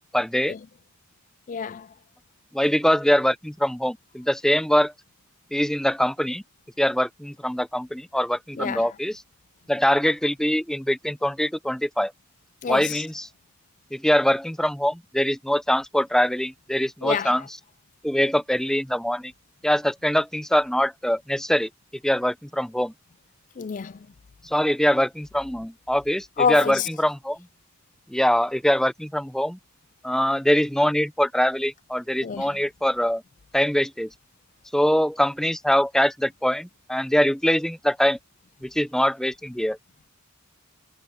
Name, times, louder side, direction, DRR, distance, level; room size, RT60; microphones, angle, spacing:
voice 1, 0.1-0.5 2.5-4.9 5.5-6.4 6.8-9.2 9.7-12.1 12.7-13.3 13.9-17.4 18.0-19.3 19.6-21.7 22.0-22.9 24.5-27.4 28.1-29.6 30.0-33.2 33.5-34.1 34.7-38.2 38.6-39.8, equal, ahead, 0.6 m, -23 dB
voice 2, 1.5-1.9 8.6-8.9 12.6-13.0 17.0-17.4 23.6-24.0 26.4-26.9 32.2-32.6, left 6 dB, 35° left, 0.3 m, -27 dB
head